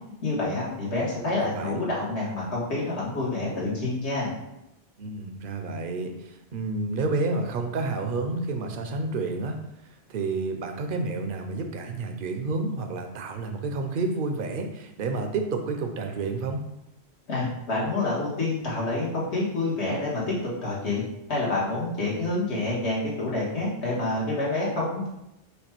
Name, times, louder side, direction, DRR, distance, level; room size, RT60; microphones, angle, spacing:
voice 1, 0.2-4.3 17.3-21.0 21.3-25.1, left 2 dB, 70° left, -6 dB, 1.7 m, -28 dB
voice 2, 1.4-1.8 5.0-16.6, right 3 dB, 55° right, 5 dB, 0.7 m, -30 dB
5.1 x 2.3 x 4.4 m, 0.88 s
omnidirectional pair, 1.2 m